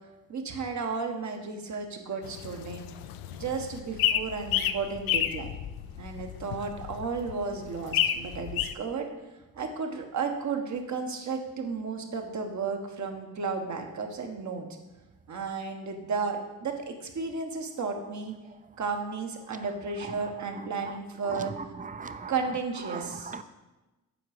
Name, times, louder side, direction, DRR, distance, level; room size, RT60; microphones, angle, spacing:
voice 1, 0.3-2.9 3.3-5.5 6.0-9.1 9.5-14.7 15.3-18.3 18.8-21.5 22.3-23.4, right 5 dB, 50° right, 4 dB, 1.3 m, -33 dB
sound 1, 2.2-8.7, left 11 dB, 75° left, 0.5 m, -31 dB
voice 2, 21.3-22.3 22.9-23.4, right 4 dB, 20° right, 11 dB, 0.6 m, -39 dB
7.7 x 4.7 x 5.1 m, 1.1 s
supercardioid pair, 60°, 36 cm